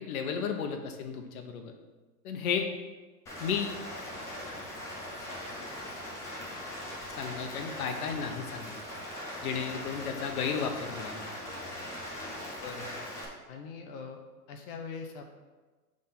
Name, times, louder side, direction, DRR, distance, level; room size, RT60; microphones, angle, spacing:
voice 1, 0.1-1.7 2.2-2.6 3.4-3.8 7.2-8.8 9.4-11.3, left 6 dB, 65° left, 4 dB, 1.1 m, -33 dB
Rain, 3.3-13.3, left 1 dB, 5° left, 0.3 m, -40 dB
voice 2, 12.6-13.0 13.5-14.2 14.5-15.3, left 5 dB, 35° left, 4 dB, 0.7 m, -42 dB
6.3 x 3.7 x 5.8 m, 1.3 s
hypercardioid pair, 125°, 47 cm